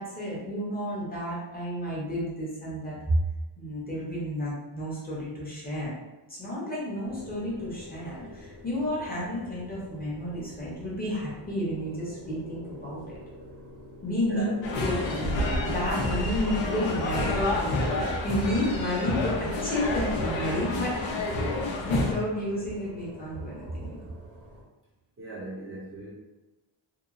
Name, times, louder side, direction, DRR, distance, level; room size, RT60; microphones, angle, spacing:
voice 1, 0.0-3.3 3.6-5.9 6.3-13.2 14.0-14.5 14.8-21.0 21.8-24.0, equal, 20° left, -7 dB, 0.6 m, -31 dB
sound 1, 7.0-24.6, equal, 75° right, 0.9 m, -47 dB
voice 2, 14.2-14.9 25.2-26.1, right 2 dB, 30° right, -7 dB, 0.5 m, -38 dB
sound 2, 14.6-22.1, left 2 dB, 85° left, 0.6 m, -29 dB
2.8 x 2.2 x 2.4 m, 1.1 s
wide cardioid pair, 180°, 45 cm